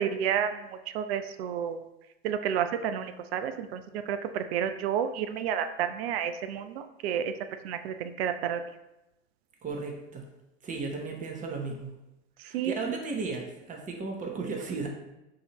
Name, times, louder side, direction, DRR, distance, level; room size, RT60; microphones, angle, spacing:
voice 1, 0.0-1.8 2.2-7.3 7.6-8.6 12.4-12.7, right 8 dB, 60° right, 10 dB, 0.5 m, -31 dB
voice 2, 9.6-10.3 10.6-11.9 12.4-14.9, right 4 dB, 20° right, 2 dB, 0.8 m, -35 dB
6.2 x 2.7 x 3.0 m, 0.95 s
figure-of-eight pair, 85°, 36 cm